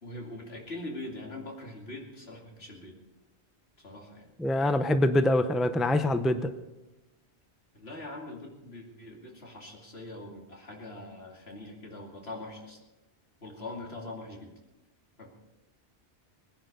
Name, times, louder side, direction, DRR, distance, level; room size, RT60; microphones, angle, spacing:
voice 1, 0.0-3.0 3.8-4.3 7.7-12.8 13.4-14.5 15.2-15.3, left 2 dB, 70° left, 0 dB, 2.9 m, -42 dB
voice 2, 4.4-6.5, left 1 dB, ahead, 9 dB, 0.6 m, -24 dB
20.5 x 10.5 x 5.4 m, 1.0 s
omnidirectional pair, 1.1 m